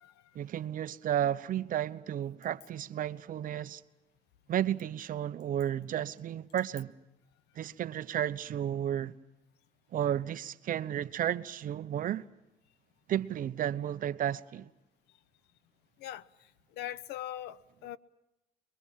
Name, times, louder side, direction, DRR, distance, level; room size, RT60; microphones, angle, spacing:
voice 1, 0.3-3.8 4.5-6.9 7.6-9.1 9.9-12.3 13.1-14.7, right 10 dB, 55° right, 1.0 m, -33 dB
voice 2, 16.8-18.0, left 12 dB, 85° left, 0.9 m, -40 dB
29.0 x 22.5 x 7.5 m
cardioid pair, 110°, 17 cm